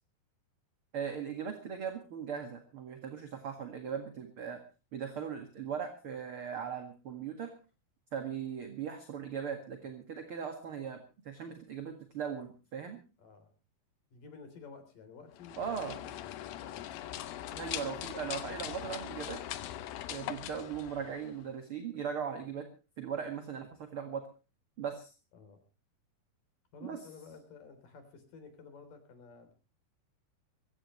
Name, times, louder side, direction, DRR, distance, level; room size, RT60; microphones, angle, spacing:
voice 1, 0.9-4.6 4.9-7.5 8.1-13.0 15.6-16.0 17.5-19.4 20.1-22.7 23.0-24.2 24.8-25.1 26.8-27.0, right 7 dB, 45° right, 6 dB, 2.2 m, -39 dB
voice 2, 13.2-13.5 14.1-17.1 25.3-25.6 26.7-29.5, left 5 dB, 60° left, 8 dB, 5.1 m, -53 dB
sound 1, 15.3-21.5, left 12 dB, 75° left, 2.8 m, -41 dB
23.0 x 16.0 x 3.1 m, 0.33 s
omnidirectional pair, 4.5 m